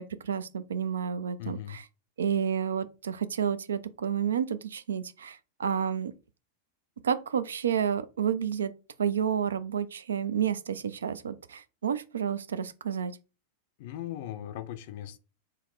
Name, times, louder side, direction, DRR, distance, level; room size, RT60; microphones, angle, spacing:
voice 1, 0.0-1.9 2.2-6.1 7.0-8.7 9.0-13.1, right 8 dB, 65° right, 0.3 m, -30 dB
voice 2, 1.4-1.8 13.8-15.2, left 12 dB, 50° left, 0.4 m, -38 dB
3.9 x 2.1 x 3.8 m
figure-of-eight pair, 90°, 0 cm